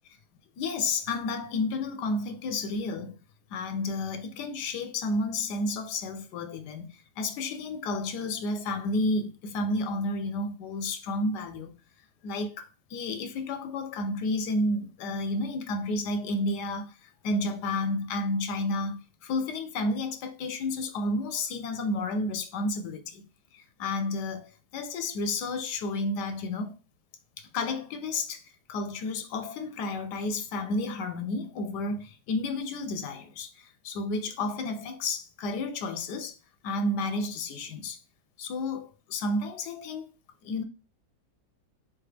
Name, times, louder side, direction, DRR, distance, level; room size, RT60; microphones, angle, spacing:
voice 1, 0.6-3.2 3.5-11.7 12.2-23.2 23.5-26.7 27.5-28.4 28.7-36.3 36.6-38.0 38.4-40.1 40.4-40.6, left 2 dB, 85° left, 1.2 m, -31 dB
3.7 x 3.5 x 3.3 m
omnidirectional pair, 1.7 m